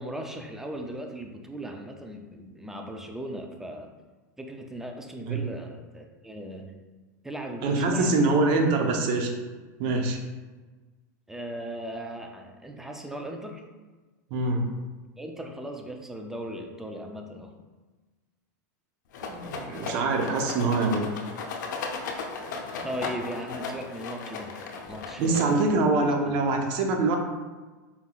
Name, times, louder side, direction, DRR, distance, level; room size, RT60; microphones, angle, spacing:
voice 1, 0.0-3.9 4.4-6.7 7.2-8.7 11.3-13.6 15.2-17.5 22.8-26.4, right 1 dB, 5° right, 3 dB, 0.4 m, -38 dB
voice 2, 7.6-9.3 9.8-10.2 14.3-14.7 19.2-21.1 25.2-27.2, right 3 dB, 50° right, 3 dB, 0.8 m, -24 dB
Rattle, 19.1-25.8, left 4 dB, 80° left, 0.6 m, -36 dB
4.3 x 3.8 x 2.3 m, 1.3 s
hypercardioid pair, 120°, 10 cm